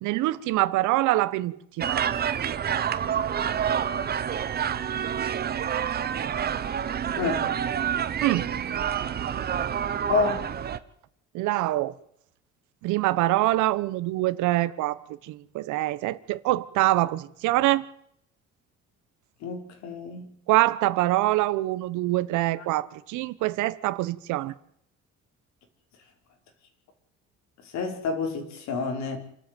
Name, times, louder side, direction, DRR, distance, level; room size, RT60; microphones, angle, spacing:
voice 1, 0.0-2.1 8.2-8.5 11.3-11.9 12.8-17.8 20.5-24.5, right 17 dB, 90° right, 1.2 m, -25 dB
sound 1, 1.8-10.8, right 8 dB, 35° right, 1.1 m, -28 dB
voice 2, 7.2-7.5 10.1-10.4 19.4-20.3 27.7-29.2, left 4 dB, 70° left, 5.3 m, -28 dB
27.5 x 13.0 x 9.2 m
cardioid pair, 155°, 29 cm